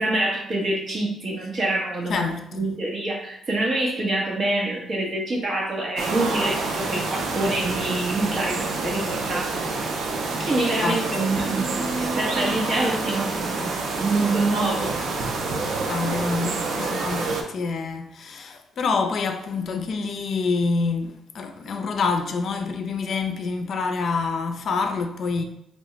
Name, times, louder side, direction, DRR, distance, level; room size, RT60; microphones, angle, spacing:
voice 1, 0.0-9.6 10.4-15.0, right 2 dB, 45° right, 1.1 m, -26 dB
voice 2, 2.1-2.7 10.8-11.0 15.9-25.4, left 4 dB, 60° left, 0.4 m, -27 dB
sound 1, 6.0-17.4, right 3 dB, 70° right, 0.5 m, -27 dB
3.4 x 2.1 x 3.8 m
cardioid pair, 90°, 0 cm